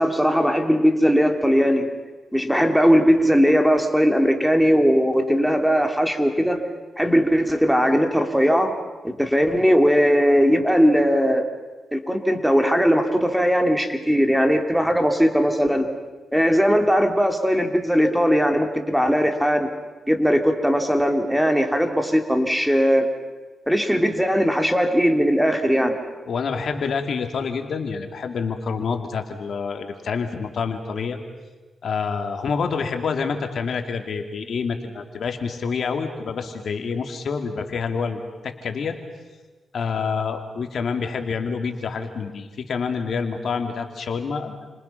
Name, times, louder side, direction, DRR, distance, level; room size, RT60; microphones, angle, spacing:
voice 1, 0.0-1.9 2.3-6.6 7.0-8.7 9.0-11.4 11.9-15.9 16.3-19.7 20.1-23.1 23.7-26.0, equal, ahead, 5 dB, 3.1 m, -19 dB
voice 2, 26.3-31.2 31.8-39.0 39.7-44.6, left 5 dB, 65° left, 5 dB, 2.6 m, -27 dB
30.0 x 26.5 x 5.9 m, 1.3 s
cardioid pair, 70°, 0 cm